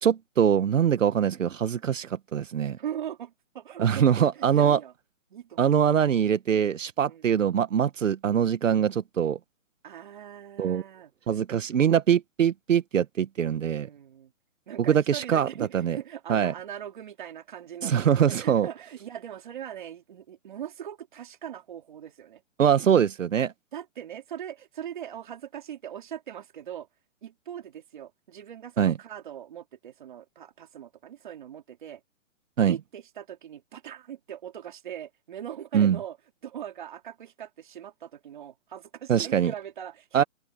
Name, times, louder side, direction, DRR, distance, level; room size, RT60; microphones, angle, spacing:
voice 1, 0.0-2.8 3.8-4.8 5.6-9.4 10.6-10.8 11.3-13.9 14.9-15.5 15.7-16.0 16.3-16.5 17.8-18.7 22.6-23.5 28.8-28.9 32.6-32.8 35.7-36.0 39.1-39.5 40.1-40.2, right 8 dB, 75° right, 1.1 m, -23 dB
voice 2, 2.8-4.9 5.3-5.8 7.1-7.3 9.8-11.1 13.8-14.3 14.7-22.4 23.7-26.9 27.2-32.0 32.6-36.2 36.4-40.3, right 10 dB, 35° right, 3.4 m, -40 dB
open air
hypercardioid pair, 180°, 39 cm